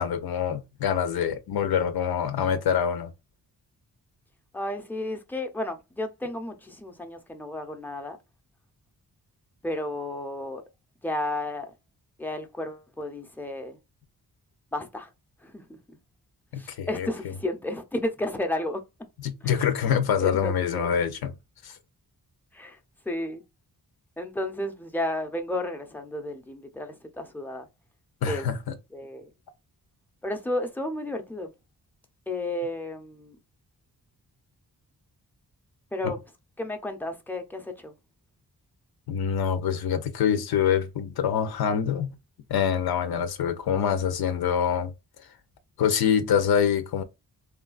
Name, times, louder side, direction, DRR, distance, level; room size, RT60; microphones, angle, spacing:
voice 1, 0.0-3.1 16.5-17.3 19.2-21.3 21.6-21.8 28.2-28.7 36.0-36.1 39.1-42.1 42.5-44.9 45.8-47.0, left 8 dB, 85° left, 0.6 m, -25 dB
voice 2, 4.5-8.2 9.6-10.6 11.0-11.7 12.2-13.8 14.7-15.1 15.4-15.6 16.6-18.8 19.4-19.6 20.2-20.9 22.5-22.8 23.1-23.4 24.2-27.6 28.3-28.4 28.9-29.3 30.2-31.5 32.3-33.4 35.9-36.2 36.6-37.9, left 1 dB, 5° left, 0.5 m, -32 dB
3.1 x 2.3 x 2.3 m
wide cardioid pair, 100°, 36 cm